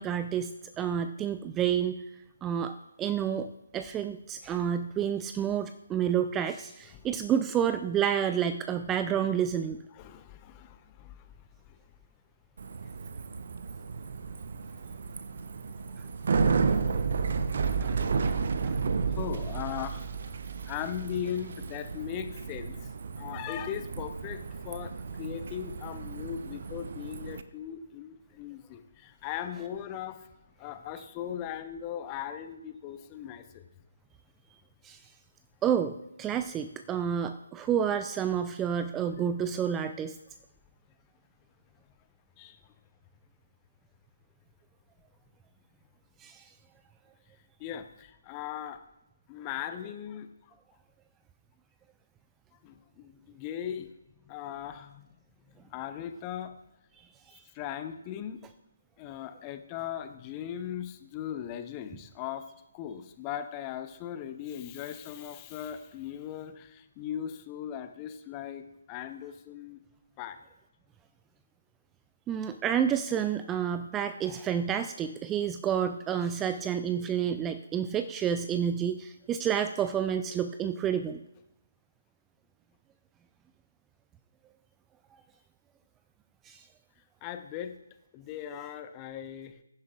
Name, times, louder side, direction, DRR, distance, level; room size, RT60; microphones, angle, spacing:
voice 1, 0.0-2.0 2.4-3.5 3.7-9.8 17.8-18.0 18.2-18.4 18.6-18.8 34.8-35.0 35.6-40.2 46.2-46.5 57.3-57.4 72.3-81.2 86.4-86.6, right 8 dB, 10° right, 10 dB, 0.3 m, -29 dB
voice 2, 9.9-11.3 11.7-11.8 15.9-16.0 19.1-30.3 30.6-33.6 42.4-42.6 47.6-48.8 49.3-50.5 52.6-53.9 54.2-55.1 55.6-56.5 57.5-58.4 59.0-62.5 62.7-69.8 70.2-70.4 87.2-87.7 88.1-89.6, left 10 dB, 20° left, 9 dB, 0.8 m, -39 dB
Bicycle, 12.6-27.4, right 5 dB, 50° right, 0.7 m, -32 dB
21.5 x 11.0 x 2.4 m, 0.89 s
figure-of-eight pair, 145°, 0 cm